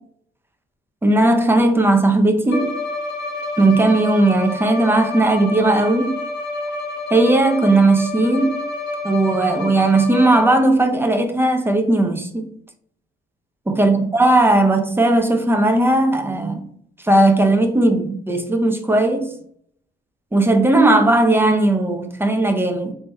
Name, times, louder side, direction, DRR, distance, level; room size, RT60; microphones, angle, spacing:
voice 1, 1.0-2.7 3.6-6.2 7.1-8.6 9.0-12.4 13.7-16.6 17.0-19.3 20.3-22.9, right 2 dB, 10° right, 0.7 m, -17 dB
Bowed string instrument, 2.5-10.8, left 2 dB, 60° left, 1.0 m, -29 dB
3.7 x 2.8 x 4.4 m
cardioid pair, 90°, 20 cm